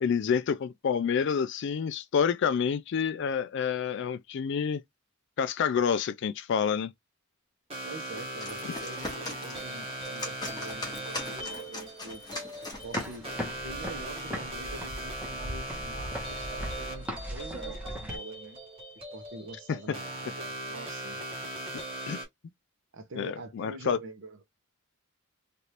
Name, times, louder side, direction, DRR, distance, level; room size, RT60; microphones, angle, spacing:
voice 1, 0.0-4.8 5.4-6.9 19.7-20.0 22.1-22.2 23.2-24.0, left 7 dB, 55° left, 0.3 m, -28 dB
sound 1, 7.7-22.3, right 1 dB, 25° right, 1.1 m, -39 dB
voice 2, 7.8-12.2 12.6-18.6 19.0-21.2 22.9-24.4, right 2 dB, 55° right, 0.8 m, -45 dB
sound 2, 8.2-13.5, left 2 dB, 20° left, 1.1 m, -40 dB
sound 3, 12.7-18.2, equal, 5° right, 0.9 m, -38 dB
3.2 x 2.5 x 2.8 m
head